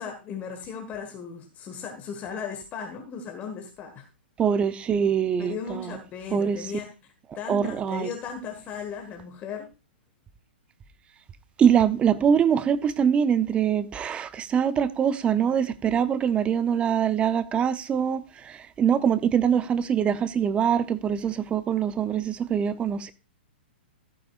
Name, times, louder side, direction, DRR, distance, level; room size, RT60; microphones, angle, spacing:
voice 1, 0.0-4.1 5.4-6.9 7.3-9.7, left 6 dB, 25° left, 1.5 m, -36 dB
voice 2, 4.4-6.0 6.3-6.7 7.5-8.1 11.6-23.1, right 8 dB, 20° right, 0.7 m, -23 dB
14.5 x 9.0 x 2.5 m
hypercardioid pair, 125°, 6 cm